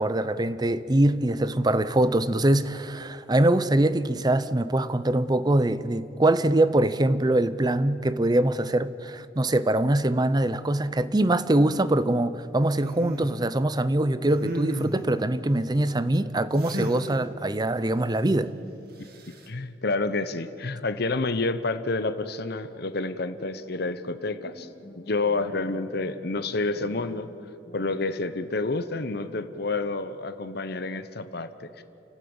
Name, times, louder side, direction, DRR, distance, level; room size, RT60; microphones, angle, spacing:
voice 1, 0.0-18.5, right 1 dB, 20° right, 0.6 m, -23 dB
sound 1, 12.8-13.3 14.2-15.1 16.6-17.1 19.0-19.5, right 1 dB, 60° right, 2.2 m, -34 dB
voice 2, 19.5-24.7 25.0-27.3 27.7-31.8, left 3 dB, 60° left, 0.9 m, -29 dB
Bowed string instrument, 23.4-28.2, equal, 30° left, 4.0 m, -49 dB
29.0 x 12.5 x 8.8 m
head